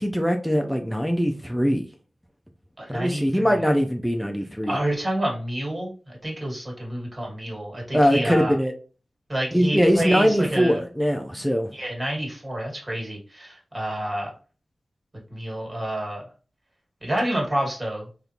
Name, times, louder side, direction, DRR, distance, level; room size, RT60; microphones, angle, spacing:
voice 1, 0.0-1.9 2.9-4.8 7.9-8.7 9.5-11.7, equal, ahead, 3 dB, 0.4 m, -22 dB
voice 2, 2.8-3.5 4.7-8.6 9.3-10.8 11.7-14.3 15.3-16.2 17.0-18.1, right 1 dB, 35° right, -2 dB, 1.8 m, -28 dB
3.6 x 2.5 x 2.8 m, 0.37 s
cardioid pair, 55°, 0 cm